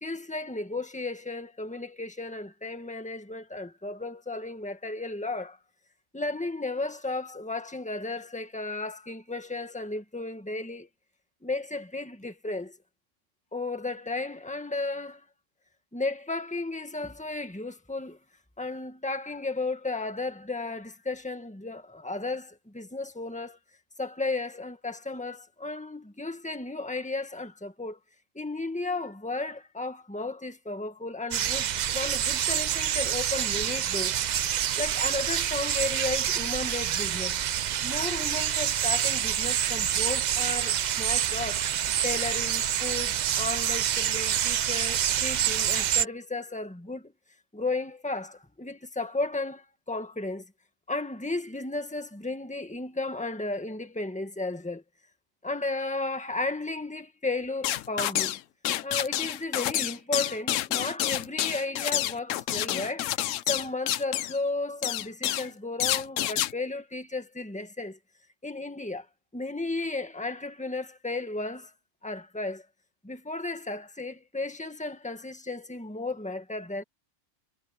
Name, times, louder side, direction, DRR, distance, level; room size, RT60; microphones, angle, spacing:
voice 1, 0.0-5.6 6.1-10.9 11.4-12.8 13.5-15.2 15.9-18.2 18.6-23.6 24.0-28.0 28.4-34.2 34.8-37.4 37.8-47.1 47.5-50.5 50.9-54.8 55.4-58.4 58.8-63.1 63.5-68.0 68.4-69.1 69.3-71.7 72.0-72.7 73.0-76.8, left 2 dB, 5° left, 1.7 m, -34 dB
sound 1, 31.3-46.1, right 10 dB, 65° right, 0.4 m, -27 dB
sound 2, 57.6-58.4 58.6-64.4 64.8-65.5 65.8-66.5, left 12 dB, 90° left, 1.0 m, -28 dB
omnidirectional pair, 1.3 m